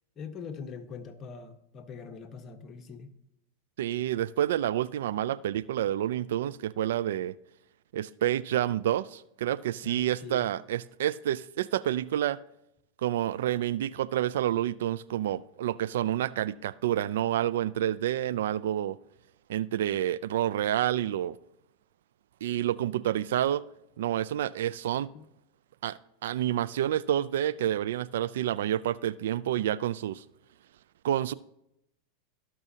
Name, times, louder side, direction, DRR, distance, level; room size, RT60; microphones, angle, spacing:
voice 1, 0.2-3.1 9.8-10.5 25.1-25.3, left 5 dB, 30° left, 1.2 m, -43 dB
voice 2, 3.8-7.3 7.9-12.4 13.0-19.0 19.5-21.4 22.4-23.6 24.0-25.1 25.8-30.2 31.0-31.3, right 11 dB, 75° right, 0.3 m, -29 dB
18.0 x 6.1 x 2.8 m
hypercardioid pair, 115°, 0 cm